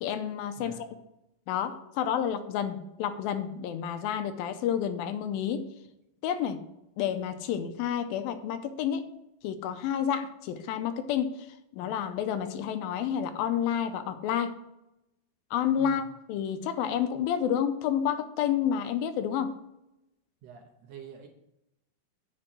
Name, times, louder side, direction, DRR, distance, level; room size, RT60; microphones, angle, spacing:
voice 1, 0.0-0.9 1.5-5.7 6.2-6.6 7.0-9.1 9.4-14.5 15.5-19.6, left 9 dB, 80° left, 9 dB, 2.3 m, -30 dB
voice 2, 20.4-21.3, right 7 dB, 75° right, 2 dB, 1.5 m, -46 dB
8.9 x 5.2 x 6.2 m, 0.88 s
omnidirectional pair, 4.4 m